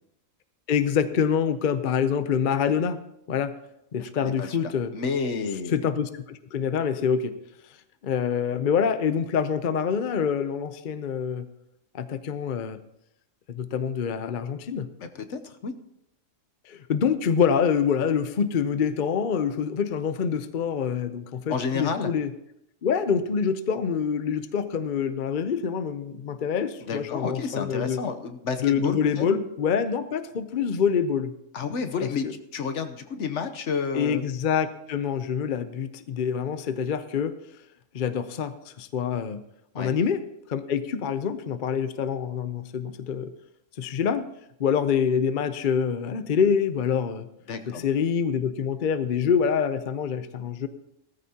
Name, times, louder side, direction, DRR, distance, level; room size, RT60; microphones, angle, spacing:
voice 1, 0.7-3.0 3.3-3.5 3.9-4.9 5.7-7.3 8.0-11.5 11.9-12.8 13.5-14.9 16.7-22.3 22.8-28.0 28.6-31.3 32.0-32.3 33.9-37.3 37.9-39.4 39.7-40.2 40.5-43.3 43.8-44.3 44.6-47.3 47.7-50.7, left 7 dB, 50° left, 10 dB, 0.7 m, -26 dB
voice 2, 4.0-5.8 15.0-15.7 21.5-22.1 26.8-29.3 31.5-34.2 39.7-39.9 47.5-47.8, left 5 dB, 65° left, 8 dB, 1.2 m, -30 dB
17.0 x 14.0 x 2.8 m, 0.79 s
omnidirectional pair, 1.3 m